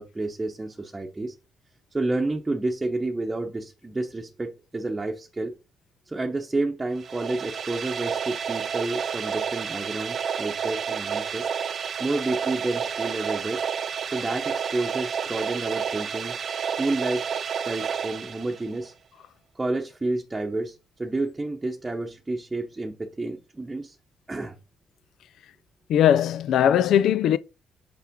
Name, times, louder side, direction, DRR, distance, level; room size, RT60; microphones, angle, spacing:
voice 1, 0.0-1.3 1.9-5.5 6.1-11.5 12.0-13.6 14.1-17.3 17.7-18.9 19.5-24.0 24.3-24.6, right 2 dB, 15° right, 0.9 m, -30 dB
sound 1, 6.9-18.9, right 7 dB, 50° right, 0.7 m, -30 dB
voice 2, 25.9-27.4, left 10 dB, 75° left, 0.4 m, -19 dB
6.1 x 5.6 x 3.7 m
cardioid pair, 90°, 0 cm